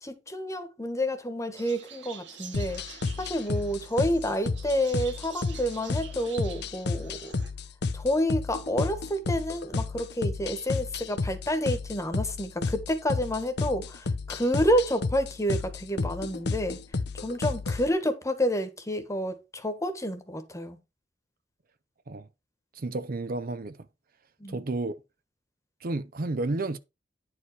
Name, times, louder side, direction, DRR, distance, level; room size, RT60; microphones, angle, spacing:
voice 1, 0.0-2.8 3.2-7.3 7.9-16.8 17.1-20.8 24.4-24.6, equal, 15° left, 1.3 m, -29 dB
sound 1, 1.5-7.5, right 7 dB, 70° right, 1.8 m, -47 dB
sound 2, 2.5-17.9, left 3 dB, 65° left, 0.6 m, -32 dB
voice 2, 22.7-23.8 24.5-25.0 25.8-26.8, right 2 dB, 55° right, 0.7 m, -31 dB
9.9 x 4.9 x 4.6 m
head